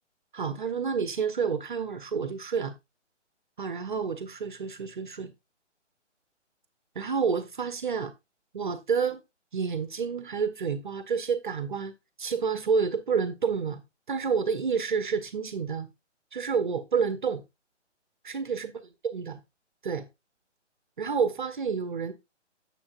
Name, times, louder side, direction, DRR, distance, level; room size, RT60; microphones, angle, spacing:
voice 1, 0.3-2.7 3.6-5.3 7.0-8.1 8.5-9.2 9.5-11.9 12.2-13.8 14.1-15.9 16.3-17.4 18.2-18.7 19.0-19.4 19.8-20.1 21.0-22.1, right 6 dB, 40° right, 0.7 m, -29 dB
8.6 x 6.8 x 2.4 m
figure-of-eight pair, 140°, 36 cm